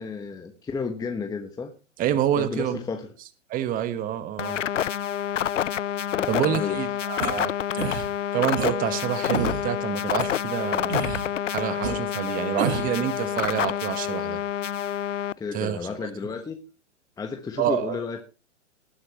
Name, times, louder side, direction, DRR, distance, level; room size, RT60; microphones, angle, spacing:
voice 1, 0.0-1.7 2.4-3.1 6.1-6.9 15.4-16.6 17.2-18.2, left 5 dB, 10° left, 5 dB, 1.2 m, -32 dB
voice 2, 2.0-2.8 3.5-4.6 6.3-7.5 8.3-11.0 11.5-14.4 15.5-15.8 17.6-18.0, right 11 dB, 25° right, 13 dB, 1.3 m, -27 dB
sound 1, 4.4-15.3, left 10 dB, 80° left, 0.6 m, -28 dB
sound 2, 7.2-7.3 7.8-8.0 8.6-8.7 9.3-9.6 10.2-10.3 10.9-11.3 11.8-11.9 12.6-12.9, right 6 dB, 60° right, 4.0 m, -28 dB
19.0 x 9.7 x 3.0 m, 0.31 s
hypercardioid pair, 120°, 37 cm